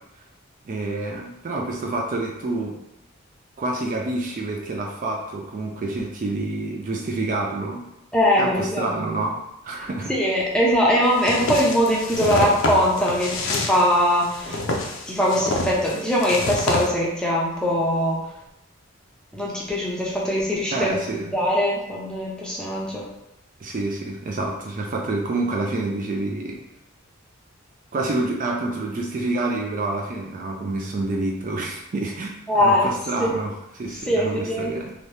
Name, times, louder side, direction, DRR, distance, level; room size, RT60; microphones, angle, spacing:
voice 1, 0.7-2.8 3.6-7.8 8.4-9.4 9.6-10.1 20.7-21.3 23.6-26.6 27.9-34.9, right 2 dB, 40° right, 0 dB, 0.3 m, -28 dB
voice 2, 8.1-9.0 10.1-14.6 15.1-18.3 19.3-23.1 32.5-32.9 33.2-33.3 34.0-34.8, equal, 5° left, -5 dB, 0.6 m, -21 dB
sound 1, 11.2-16.9, left 2 dB, 70° left, 0.5 m, -27 dB
2.8 x 2.7 x 3.2 m, 0.89 s
head